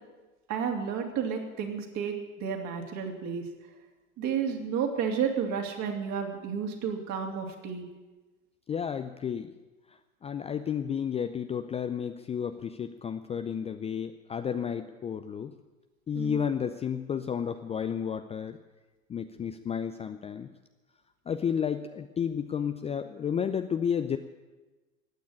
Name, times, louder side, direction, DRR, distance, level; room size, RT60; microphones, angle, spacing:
voice 1, 0.5-3.4 4.2-7.8 16.1-16.4, right 7 dB, 45° right, 2 dB, 3.0 m, -31 dB
voice 2, 8.7-9.5 9.9-15.5 16.1-18.6 19.1-20.5 21.3-24.2, left 7 dB, 15° left, 8 dB, 0.5 m, -32 dB
15.5 x 9.5 x 8.7 m, 1.2 s
hypercardioid pair, 90°, 41 cm